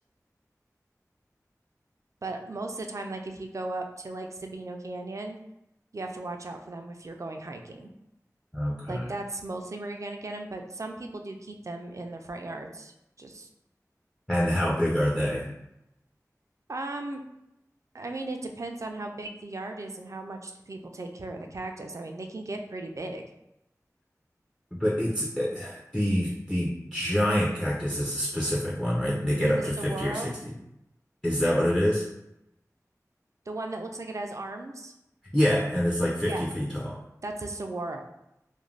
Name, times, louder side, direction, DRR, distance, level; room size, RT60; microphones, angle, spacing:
voice 1, 2.2-5.4 5.9-7.9 8.9-13.5 16.7-17.2 17.9-23.2 29.3-30.4 33.5-34.9 36.2-36.5 37.2-38.0, right 2 dB, 55° right, 4 dB, 0.4 m, -36 dB
voice 2, 8.5-9.1 14.3-15.5 24.7-30.3 31.2-32.1 35.3-37.0, equal, 10° left, -4 dB, 0.5 m, -26 dB
2.4 x 2.1 x 3.1 m, 0.86 s
wide cardioid pair, 45°, 6 cm